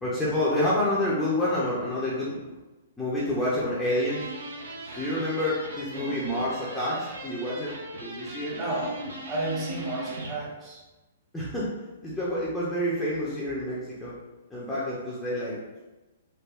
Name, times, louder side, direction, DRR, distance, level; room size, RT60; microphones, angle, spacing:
voice 1, 0.0-2.5 3.0-4.3 5.0-8.6 11.3-11.7 12.0-14.1 14.5-15.6, left 1 dB, 5° left, -9 dB, 0.6 m, -28 dB
sound 1, 4.0-10.4, right 2 dB, 70° right, 0.5 m, -39 dB
voice 2, 5.9-6.4 8.5-10.8, right 2 dB, 20° right, -5 dB, 1.0 m, -33 dB
3.4 x 2.1 x 2.4 m, 1.1 s
figure-of-eight pair, 120°, 0 cm